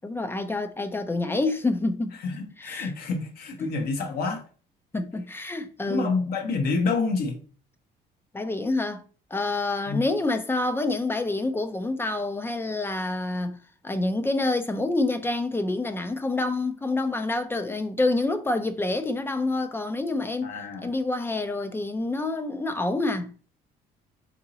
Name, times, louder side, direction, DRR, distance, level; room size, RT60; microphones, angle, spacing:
voice 1, 0.0-2.2 2.6-2.9 3.6-3.7 4.9-6.1 8.3-9.0 9.3-13.6 13.8-20.5 20.8-23.3, left 2 dB, 15° left, 0.3 m, -27 dB
voice 2, 2.2-4.4 5.9-7.3 9.9-10.0 20.4-20.9, left 4 dB, 65° left, 0.9 m, -28 dB
3.9 x 2.7 x 2.7 m
cardioid pair, 110°, 17 cm